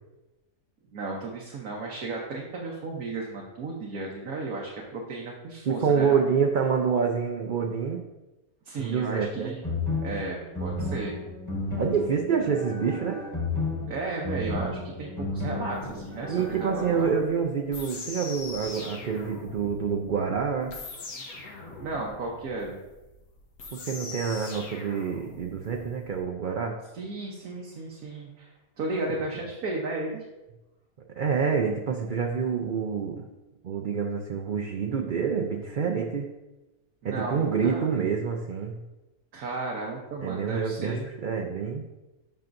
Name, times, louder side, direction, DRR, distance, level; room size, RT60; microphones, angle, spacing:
voice 1, 0.9-6.2 8.6-9.6 10.0-11.2 13.9-17.1 21.8-22.8 26.9-30.2 37.0-37.9 39.3-41.1, right 3 dB, 85° right, -2 dB, 1.4 m, -34 dB
voice 2, 5.7-8.1 8.8-9.5 11.8-13.2 16.3-20.8 23.7-26.8 31.2-33.3 33.6-36.3 37.0-38.8 40.2-41.8, right 6 dB, 60° right, 1 dB, 0.5 m, -27 dB
sound 1, 9.6-17.0, left 2 dB, 15° left, 1.3 m, -33 dB
sound 2, 15.7-26.2, left 3 dB, 80° left, 1.6 m, -42 dB
9.1 x 5.8 x 2.6 m, 1.0 s
omnidirectional pair, 1.5 m